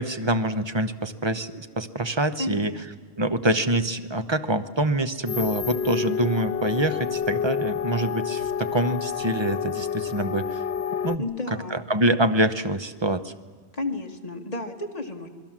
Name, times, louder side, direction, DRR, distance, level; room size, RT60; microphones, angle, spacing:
voice 1, 0.0-2.7 3.2-10.6 11.0-11.2 11.7-13.3, right 1 dB, 25° right, 9 dB, 1.1 m, -25 dB
voice 2, 2.4-2.8 11.2-11.8 13.7-15.3, left 2 dB, 35° left, 3 dB, 2.3 m, -32 dB
sound 1, 5.3-11.2, left 7 dB, 85° left, 1.2 m, -29 dB
29.0 x 21.0 x 7.5 m, 1.5 s
omnidirectional pair, 1.1 m